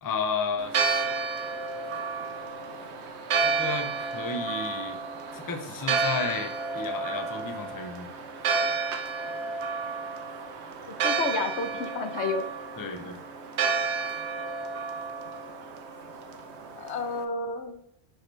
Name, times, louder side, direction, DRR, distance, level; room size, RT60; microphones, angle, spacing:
voice 1, 0.0-1.0 3.4-5.0 5.3-8.1 12.8-13.2, left 5 dB, 25° left, 6 dB, 0.5 m, -33 dB
Church bell, 0.6-17.2, right 5 dB, 80° right, 1.0 m, -31 dB
voice 2, 11.0-12.5 16.8-17.8, left 4 dB, 80° left, 7 dB, 1.1 m, -30 dB
6.3 x 4.7 x 3.2 m, 0.79 s
omnidirectional pair, 1.1 m